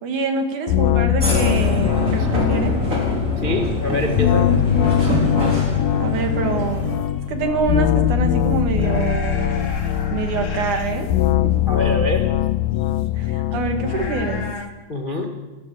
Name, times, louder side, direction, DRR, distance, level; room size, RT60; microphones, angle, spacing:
voice 1, 0.0-2.7 6.0-6.9 7.3-9.5 10.1-11.1 11.4-11.5 13.2-14.5, right 4 dB, 65° right, 6 dB, 3.4 m, -25 dB
sound 1, 0.7-14.5, left 12 dB, 85° left, 2.5 m, -21 dB
sound 2, 1.2-6.9, equal, 20° right, 4.8 m, -24 dB
sound 3, 3.1-14.7, left 2 dB, 35° left, 1.3 m, -34 dB
voice 2, 3.4-4.5 11.7-12.4 14.9-15.3, left 1 dB, 60° left, 3 dB, 0.5 m, -24 dB
29.5 x 12.5 x 7.6 m, 1.2 s
omnidirectional pair, 3.9 m